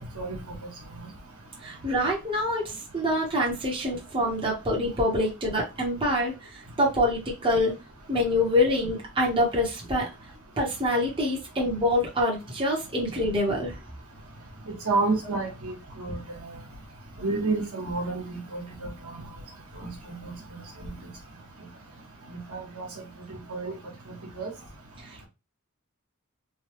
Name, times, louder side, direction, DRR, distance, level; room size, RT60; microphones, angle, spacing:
voice 1, 1.6-7.7 8.1-10.1 10.6-13.8, left 1 dB, 25° right, 0.9 m, -26 dB
voice 2, 14.8-16.2 17.2-19.2 19.8-20.9 22.3-22.9 23.3-23.7 24.4-24.5, right 3 dB, 90° right, 1.2 m, -30 dB
3.1 x 2.3 x 3.0 m
head